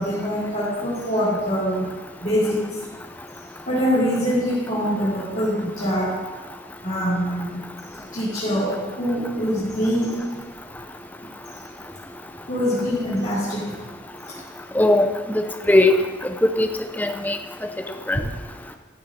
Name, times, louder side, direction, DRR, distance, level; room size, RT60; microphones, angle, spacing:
voice 1, 0.0-1.9 2.2-2.6 3.7-6.1 6.8-7.6 8.1-10.2 12.5-13.7, equal, 45° left, -14 dB, 4.7 m, -24 dB
voice 2, 14.7-16.7 17.0-17.4 18.1-18.2, left 1 dB, 10° left, 6 dB, 0.6 m, -19 dB
15.5 x 8.3 x 4.3 m, 1.3 s
head